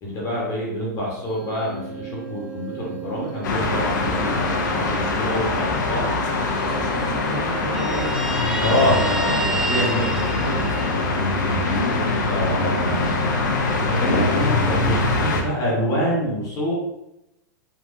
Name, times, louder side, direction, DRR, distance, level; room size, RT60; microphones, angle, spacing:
voice 1, 0.0-6.1 8.6-10.6 12.3-16.7, equal, 35° left, -4 dB, 1.1 m, -26 dB
sound 1, 1.2-10.5, right 8 dB, 40° right, 1.2 m, -40 dB
sound 2, 3.4-15.4, left 2 dB, 75° left, 0.7 m, -23 dB
voice 2, 6.5-8.4 10.9-11.5, right 1 dB, 20° right, -5 dB, 1.4 m, -35 dB
Guitar, 7.7-11.3, right 2 dB, 5° right, 0.4 m, -29 dB
3.5 x 2.6 x 2.6 m, 0.87 s
hypercardioid pair, 115°, 10 cm